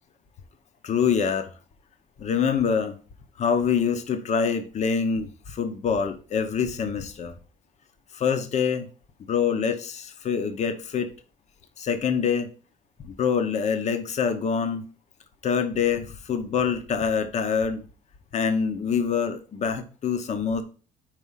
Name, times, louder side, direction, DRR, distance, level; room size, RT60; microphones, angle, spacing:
voice 1, 0.8-1.5 2.2-3.0 3.4-7.3 8.1-8.9 9.3-11.1 11.8-12.5 13.0-14.8 15.4-17.8 18.3-20.6, left 6 dB, 40° left, 0.9 m, -25 dB
4.9 x 4.6 x 5.6 m
cardioid pair, 110°, 17 cm